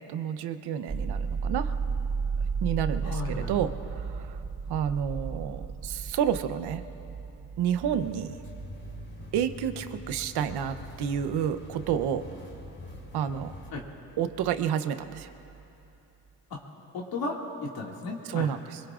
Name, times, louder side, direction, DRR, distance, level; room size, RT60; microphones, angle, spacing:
voice 1, 0.0-1.7 2.6-4.4 4.7-6.8 7.6-8.3 9.3-12.2 13.1-13.5 14.2-15.3 18.3-18.8, right 9 dB, 80° right, 10 dB, 0.9 m, -30 dB
sound 1, 0.9-14.7 15.0-15.9, right 5 dB, 20° right, 0.5 m, -36 dB
voice 2, 3.0-3.6 13.7-13.8 16.5-16.6 16.9-18.6, left 3 dB, 65° left, -2 dB, 2.3 m, -35 dB
sound 2, 8.0-13.7, left 3 dB, 30° left, 2.9 m, -45 dB
24.5 x 22.5 x 2.5 m, 2.9 s
cardioid pair, 105°, 39 cm